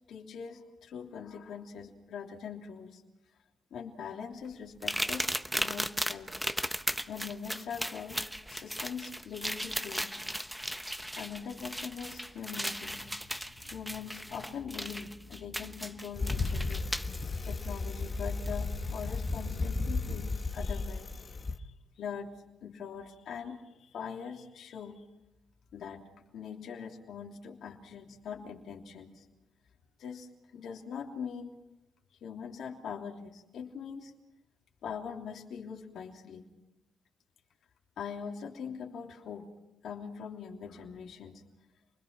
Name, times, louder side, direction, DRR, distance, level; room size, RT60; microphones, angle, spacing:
voice 1, 0.1-3.0 3.7-6.4 7.1-8.2 8.5-10.2 11.2-13.2 13.6-16.8 17.5-22.3 22.6-25.0 25.7-26.0 26.3-29.3 30.0-31.6 32.2-34.1 34.8-36.5 38.0-39.5 39.8-41.4, left 6 dB, 70° left, 0 dB, 3.2 m, -42 dB
sound 1, 4.8-17.2 18.5-18.6 19.1-19.3, equal, ahead, 1.0 m, -36 dB
Bicycle, 16.1-21.6, left 3 dB, 30° left, 1.7 m, -34 dB
29.0 x 21.5 x 6.1 m, 0.96 s
cardioid pair, 90°, 0 cm